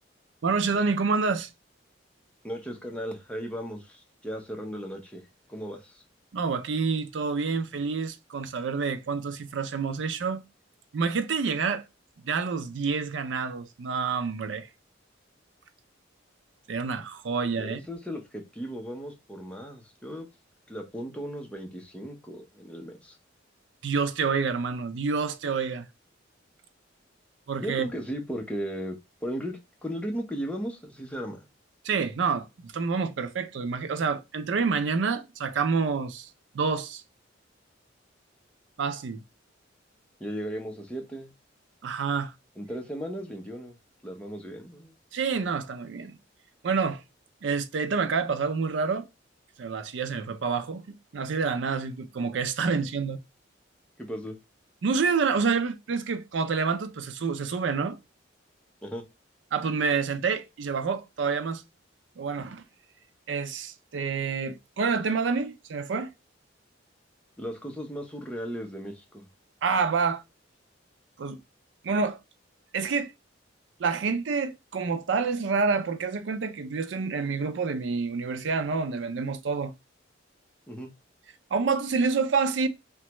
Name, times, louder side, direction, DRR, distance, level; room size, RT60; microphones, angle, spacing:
voice 1, 0.4-1.5 6.3-10.4 10.9-11.8 12.2-14.7 16.7-17.8 23.8-25.9 27.5-27.9 31.8-36.3 36.5-37.0 38.8-39.2 41.8-42.3 45.1-46.2 46.6-47.0 47.4-49.1 49.6-53.2 54.8-58.0 59.5-61.6 62.2-62.6 63.3-66.1 69.6-70.2 71.2-71.4 71.8-72.2 72.7-73.1 73.8-79.7 81.5-82.7, right 5 dB, 70° right, 0.4 m, -28 dB
voice 2, 2.4-5.2 5.5-6.0 17.6-20.3 20.7-23.2 27.6-31.5 40.2-41.4 42.6-43.8 44.0-44.9 54.0-54.4 58.8-59.0 67.4-69.3 80.7-80.9, equal, 5° left, 0.6 m, -36 dB
3.1 x 2.2 x 2.9 m
head